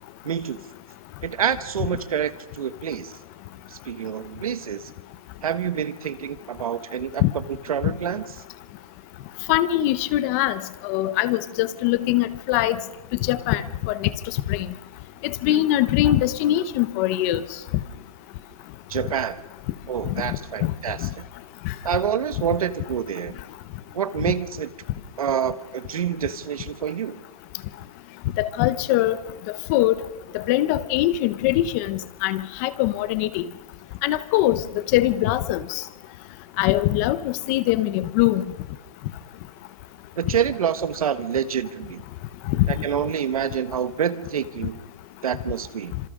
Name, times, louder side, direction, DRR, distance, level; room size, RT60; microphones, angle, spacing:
voice 1, 0.2-0.6 1.2-3.1 3.7-4.8 5.4-7.2 7.7-8.2 18.9-19.4 19.9-21.0 21.8-23.3 23.9-24.7 25.2-27.2 40.2-42.0 42.7-44.8 45.2-45.9, right 8 dB, 75° right, 11 dB, 1.4 m, -27 dB
voice 2, 9.5-12.8 13.2-14.1 14.5-14.7 15.2-17.4 20.1-20.7 21.6-21.7 28.4-29.2 29.5-30.1 30.3-33.4 34.0-34.6 34.9-35.8 36.6-38.4 42.5-42.8, left 14 dB, 25° left, 14 dB, 0.7 m, -22 dB
28.5 x 26.5 x 3.7 m, 1.1 s
hypercardioid pair, 160°, 18 cm